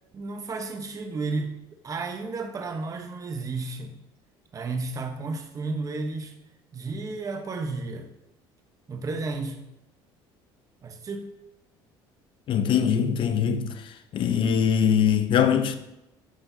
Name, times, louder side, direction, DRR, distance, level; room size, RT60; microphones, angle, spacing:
voice 1, 0.1-1.5 1.8-3.9 4.5-6.3 6.7-8.1 8.9-9.6 10.8-11.3, right 3 dB, 35° right, 1.1 m, -32 dB
voice 2, 12.5-13.7 14.1-15.7, left 8 dB, 55° left, 0.8 m, -22 dB
11.5 x 5.6 x 2.8 m
cardioid pair, 105°, 10 cm